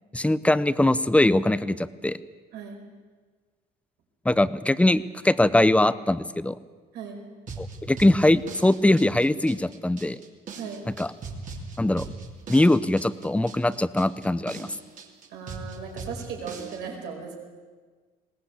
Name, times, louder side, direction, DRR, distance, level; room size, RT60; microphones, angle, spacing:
voice 1, 0.1-2.2 4.2-6.6 7.6-10.2 10.9-11.1 11.8-12.1 12.5-14.7, left 1 dB, 5° left, 15 dB, 0.7 m, -22 dB
sound 1, 7.5-16.8, right 3 dB, 50° right, 3.1 m, -40 dB
voice 2, 15.3-17.4, right 6 dB, 85° right, 1 dB, 5.0 m, -37 dB
20.5 x 18.0 x 8.5 m, 1.5 s
cardioid pair, 110°, 17 cm